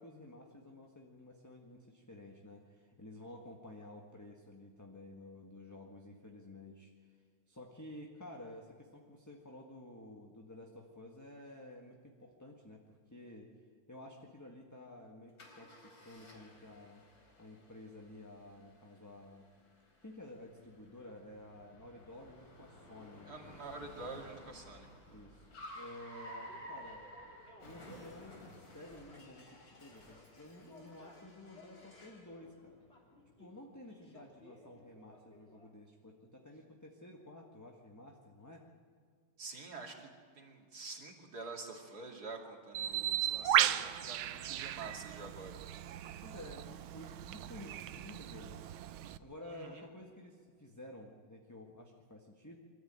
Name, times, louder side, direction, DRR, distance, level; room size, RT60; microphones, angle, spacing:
voice 1, 0.0-13.5 13.9-17.0 17.4-19.5 20.0-24.3 25.1-25.5 25.7-27.0 27.6-32.8 33.4-38.7 46.2-48.6 49.2-52.6, left 1 dB, 10° left, 1 dB, 1.4 m, -52 dB
Car, 15.4-32.3, equal, 65° left, 4.6 m, -54 dB
voice 2, 23.3-24.9 39.4-45.6 49.5-49.8, right 3 dB, 50° right, 1 dB, 3.0 m, -47 dB
sound 1, 26.2-35.7, left 1 dB, 30° left, 3.6 m, -61 dB
Bird, 42.7-49.2, right 12 dB, 80° right, 1.5 m, -35 dB
24.5 x 14.0 x 8.9 m, 2.1 s
omnidirectional pair, 2.3 m